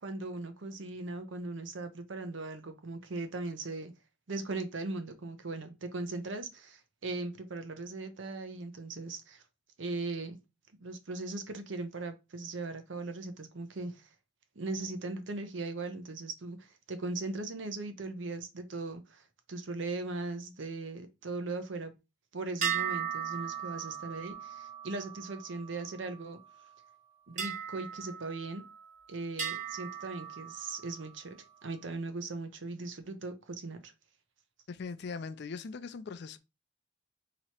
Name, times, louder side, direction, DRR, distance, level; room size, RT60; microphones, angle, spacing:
voice 1, 0.0-3.9 4.3-9.4 9.8-10.4 10.8-14.1 14.6-21.9 22.3-26.4 27.3-28.6 29.1-33.9, right 3 dB, 70° right, 0.7 m, -39 dB
sound 1, 22.6-26.3 27.4-28.9 29.4-31.1, right 8 dB, 40° right, 1.2 m, -38 dB
voice 2, 34.7-36.4, left 5 dB, 55° left, 0.4 m, -40 dB
3.0 x 2.9 x 4.2 m
head